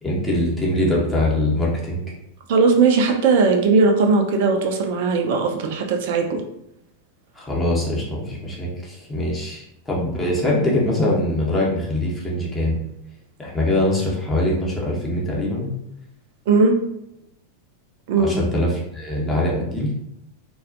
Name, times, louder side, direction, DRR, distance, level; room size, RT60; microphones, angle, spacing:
voice 1, 0.0-2.0 7.3-12.8 13.4-15.7 18.2-19.9, left 1 dB, 15° left, -4 dB, 0.7 m, -23 dB
voice 2, 2.5-6.4 16.5-16.7 18.1-18.4, right 4 dB, 50° right, 3 dB, 0.3 m, -18 dB
2.3 x 2.1 x 2.5 m, 0.80 s
figure-of-eight pair, 90°, 0 cm